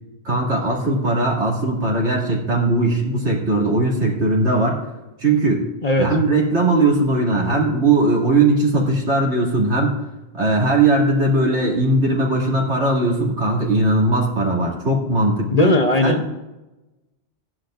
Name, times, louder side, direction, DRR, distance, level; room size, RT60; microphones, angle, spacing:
voice 1, 0.2-4.8 5.2-5.7 6.0-10.0 10.3-15.7 16.0-16.2, right 2 dB, 80° right, -3 dB, 3.0 m, -19 dB
voice 2, 15.5-16.3, left 2 dB, 40° left, 5 dB, 0.8 m, -18 dB
16.0 x 11.0 x 2.6 m, 1.0 s
omnidirectional pair, 1.1 m